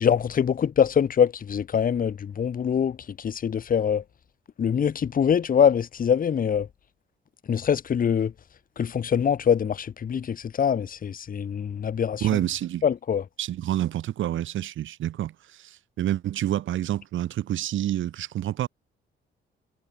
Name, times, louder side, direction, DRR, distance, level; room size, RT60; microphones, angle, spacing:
voice 1, 0.0-4.0 4.6-6.7 7.5-8.3 8.8-12.3 12.8-13.2, left 8 dB, 45° left, 1.3 m, -24 dB
voice 2, 12.2-12.8 13.4-18.7, right 12 dB, 75° right, 3.7 m, -28 dB
cardioid pair, 90°, 20 cm